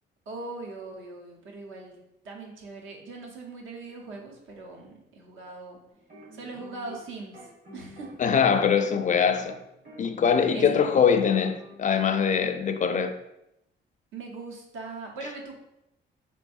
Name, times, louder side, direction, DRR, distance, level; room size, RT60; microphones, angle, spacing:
voice 1, 0.3-2.0 2.2-5.8 6.3-8.1 10.5-10.8 14.1-15.6, right 3 dB, 75° right, 1.0 m, -40 dB
sound 1, 5.9-7.1 7.3-12.1, equal, 50° right, 1.3 m, -48 dB
voice 2, 8.2-9.6 10.0-13.1, left 7 dB, 40° left, 0.4 m, -22 dB
4.1 x 3.1 x 2.6 m
cardioid pair, 90°, 20 cm